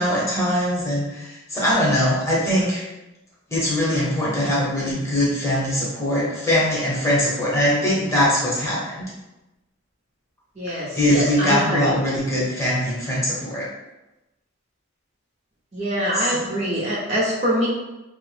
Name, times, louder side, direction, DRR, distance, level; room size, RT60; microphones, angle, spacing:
voice 1, 0.0-2.8 3.5-9.1 10.7-13.7 16.1-16.4, left 1 dB, 15° left, -7 dB, 0.8 m, -22 dB
voice 2, 10.6-12.0 15.7-17.7, equal, 35° right, -6 dB, 0.7 m, -24 dB
3.0 x 2.1 x 3.1 m, 0.99 s
head